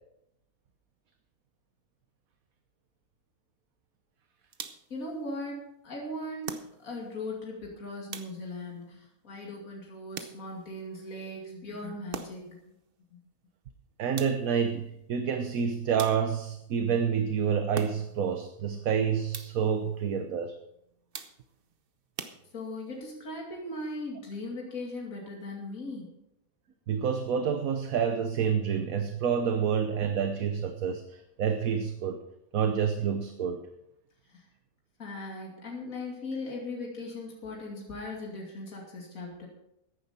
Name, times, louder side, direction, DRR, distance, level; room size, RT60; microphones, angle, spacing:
sound 1, 4.5-5.0 6.4-7.1 8.1-8.7 10.1-10.7 12.1-12.6 14.2-14.7 16.0-16.6 17.7-18.3 19.3-19.8 21.1-21.7 22.2-22.9, right 6 dB, 45° right, 0.9 m, -42 dB
voice 1, 4.9-12.6 13.1-13.2 22.5-26.1 34.3-34.5 35.0-39.5, left 2 dB, 65° left, -1 dB, 2.9 m, -39 dB
voice 2, 14.0-20.6 26.9-32.2 32.5-33.7, right 7 dB, 70° right, 7 dB, 1.3 m, -28 dB
14.5 x 10.5 x 4.3 m, 0.81 s
omnidirectional pair, 1.6 m